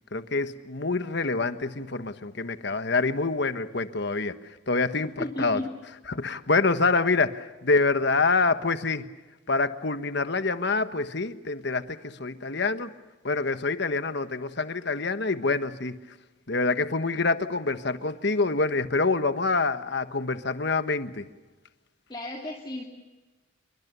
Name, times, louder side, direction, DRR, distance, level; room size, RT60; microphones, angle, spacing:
voice 1, 0.1-4.3 4.7-5.6 6.1-9.1 9.5-12.9 13.2-16.0 16.5-21.3, left 3 dB, 60° left, 10 dB, 1.3 m, -26 dB
voice 2, 5.2-5.7 22.1-22.8, left 1 dB, 25° left, 0 dB, 2.6 m, -33 dB
28.0 x 23.5 x 6.9 m, 1.2 s
head